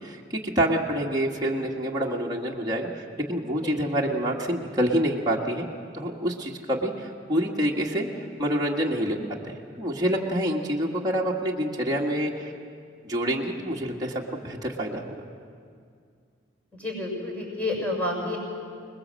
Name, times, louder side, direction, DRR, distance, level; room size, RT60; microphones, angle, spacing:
voice 1, 0.0-5.6 5.9-9.2 9.4-12.5 13.0-15.2, equal, 20° right, -4 dB, 1.8 m, -27 dB
voice 2, 16.7-18.4, left 2 dB, 10° left, -1 dB, 6.5 m, -29 dB
27.0 x 21.0 x 7.7 m, 2.2 s
head